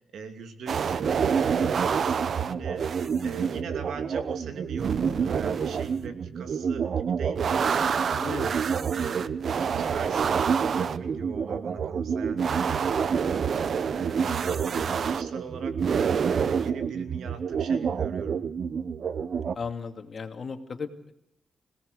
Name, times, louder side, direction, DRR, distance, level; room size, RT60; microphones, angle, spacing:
voice 1, 0.1-2.9 3.2-8.5 8.9-12.9 13.9-15.9 16.3-18.4, right 5 dB, 85° right, 7 dB, 2.7 m, -40 dB
sound 1, 0.7-19.6, right 6 dB, 65° right, 0.8 m, -27 dB
voice 2, 8.2-8.6 19.5-21.1, left 5 dB, 50° left, 7 dB, 2.4 m, -36 dB
26.5 x 17.5 x 6.6 m, 0.76 s
cardioid pair, 95°, 0 cm